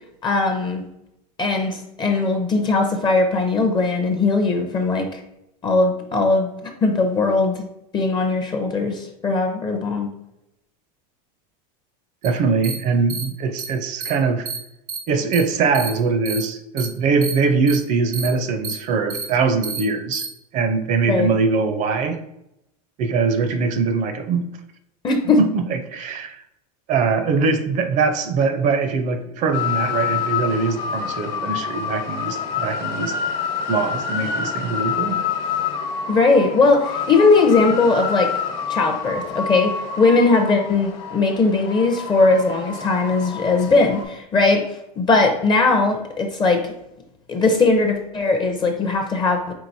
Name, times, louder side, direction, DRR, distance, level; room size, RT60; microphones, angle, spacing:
voice 1, 0.2-0.8 1.4-5.2 5.6-7.6 7.9-10.1 21.1-21.3 25.0-25.4 36.1-38.3 38.7-44.7 45.0-46.7 47.3-49.5, left 3 dB, 25° left, 4 dB, 0.5 m, -19 dB
voice 2, 12.2-14.5 15.1-20.3 20.5-22.2 23.0-24.5 25.4-26.4 26.9-33.1 33.7-35.2, right 4 dB, 40° right, 8 dB, 0.5 m, -22 dB
sound 1, 12.2-12.3 12.6-12.7 13.1-13.2 13.6-13.7 14.0-14.1 14.5-14.6 14.9-15.0 15.3-15.4 15.7-15.9 16.3-16.4 16.8-16.9 17.2-17.3 17.7-17.8 18.1-18.3 18.6-18.7 19.1-19.2 19.6-19.8 20.1-20.3, right 5 dB, 90° right, 1.3 m, -29 dB
sound 2, 29.5-44.0, left 6 dB, 55° left, 1.1 m, -27 dB
4.6 x 3.7 x 2.6 m, 0.85 s
supercardioid pair, 125°, 20 cm